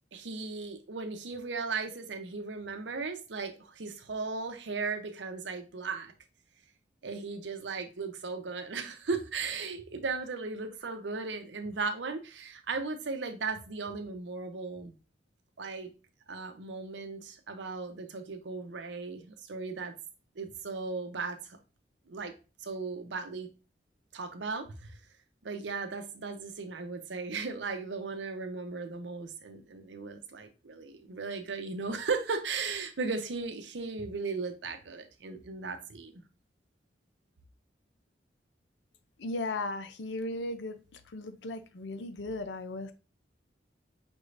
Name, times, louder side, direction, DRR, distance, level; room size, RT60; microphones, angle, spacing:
voice 1, 0.1-6.1 7.0-14.9 15.6-15.9 16.3-19.9 20.4-21.6 22.1-22.3 22.6-23.5 24.1-25.0 25.4-36.2, right 4 dB, 80° right, 7 dB, 0.7 m, -36 dB
voice 2, 39.2-42.9, left 2 dB, 75° left, 9 dB, 0.6 m, -36 dB
5.2 x 3.2 x 2.5 m, 0.33 s
head